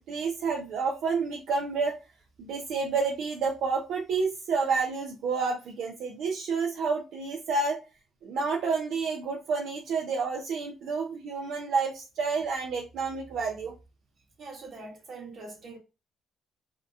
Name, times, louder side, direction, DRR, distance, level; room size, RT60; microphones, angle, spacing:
voice 1, 0.1-2.0 2.4-7.8 8.2-13.7, right 4 dB, 80° right, 0.5 m, -29 dB
voice 2, 14.4-15.8, right 3 dB, 55° right, 1.2 m, -43 dB
2.8 x 2.3 x 2.4 m
cardioid pair, 90°, 0 cm